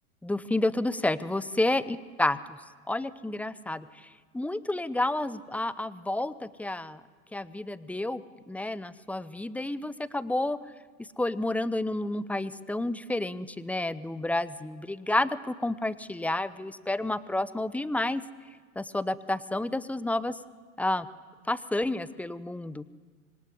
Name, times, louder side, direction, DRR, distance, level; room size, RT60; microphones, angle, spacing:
voice 1, 0.2-2.4 2.9-4.1 4.3-7.0 7.3-10.6 11.2-18.2 18.8-20.3 20.8-21.1 21.5-22.8, left 2 dB, 5° left, 17 dB, 0.8 m, -30 dB
26.0 x 23.5 x 9.8 m, 1.5 s
figure-of-eight pair, 90°, 42 cm